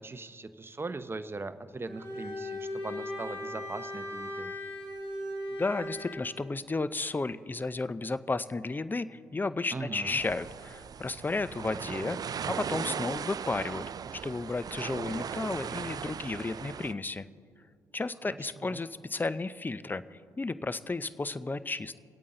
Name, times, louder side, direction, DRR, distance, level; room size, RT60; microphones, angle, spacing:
voice 1, 0.0-4.6 9.7-10.2 18.3-18.8, right 3 dB, 25° right, 11 dB, 0.8 m, -40 dB
Bowed string instrument, 1.8-6.3, left 1 dB, 65° left, 4.1 m, -38 dB
voice 2, 5.6-13.8 14.2-17.3 17.9-22.1, left 3 dB, 20° left, 15 dB, 0.5 m, -33 dB
sound 1, 10.1-16.9, right 7 dB, 40° right, 0.3 m, -38 dB
25.0 x 8.5 x 3.8 m, 2.2 s
hypercardioid pair, 50°, 10 cm